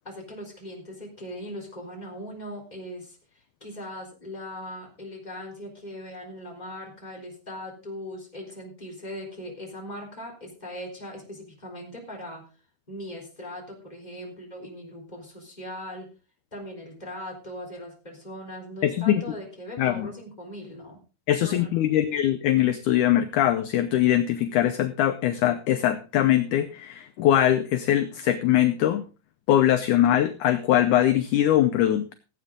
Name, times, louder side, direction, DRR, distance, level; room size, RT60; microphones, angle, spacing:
voice 1, 0.0-12.5 12.9-16.1 16.5-21.0 21.4-21.9, equal, 10° left, 0 dB, 3.8 m, -39 dB
voice 2, 18.8-19.2 19.8-20.1 21.3-29.1 29.5-32.1, left 12 dB, 75° left, 10 dB, 1.9 m, -22 dB
17.5 x 8.5 x 3.7 m, 0.32 s
omnidirectional pair, 4.2 m